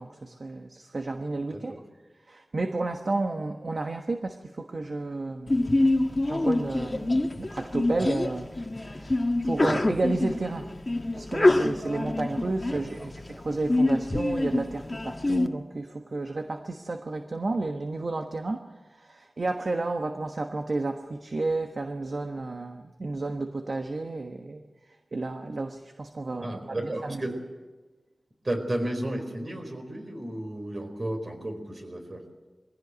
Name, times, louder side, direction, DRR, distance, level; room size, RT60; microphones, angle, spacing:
voice 1, 0.0-1.7 2.3-5.6 6.3-10.7 11.1-24.7 25.1-27.3, right 2 dB, 60° right, 5 dB, 1.3 m, -32 dB
voice 2, 1.5-1.8 12.7-13.1 26.4-27.3 28.4-32.2, right 1 dB, 45° right, 5 dB, 4.4 m, -33 dB
Sneeze, 5.5-15.5, left 2 dB, 35° left, 1.4 m, -26 dB
22.5 x 16.0 x 8.1 m, 1.2 s
wide cardioid pair, 75°, 0 cm